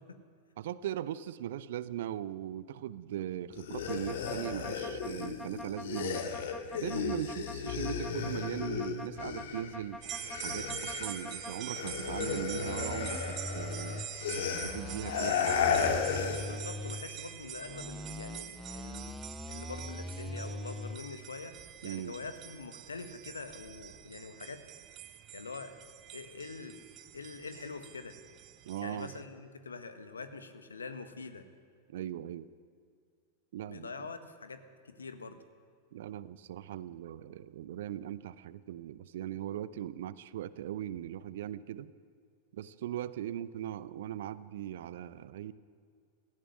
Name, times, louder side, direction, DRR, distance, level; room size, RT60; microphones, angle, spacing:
voice 1, 0.6-6.3 6.7-10.0 10.4-14.0 14.4-15.6 21.8-22.1 28.6-29.1 31.9-32.5 33.5-33.9 35.9-41.9 42.5-45.5, right 11 dB, 55° right, 17 dB, 0.7 m, -39 dB
sound 1, 3.5-9.8 10.0-16.6, left 6 dB, 60° left, 2.1 m, -34 dB
sound 2, 3.9-11.5 11.9-14.1 14.5-17.1 17.6-21.0, left 1 dB, 5° left, 0.6 m, -43 dB
sound 3, 10.0-29.2, right 12 dB, 35° right, 1.1 m, -45 dB
voice 2, 16.4-19.2 19.5-24.6 25.0-25.8 26.1-26.9 27.1-28.1 28.8-31.4 33.7-35.4, left 4 dB, 75° left, 10 dB, 1.6 m, -44 dB
17.5 x 15.5 x 9.9 m, 2.2 s
figure-of-eight pair, 90°, 0 cm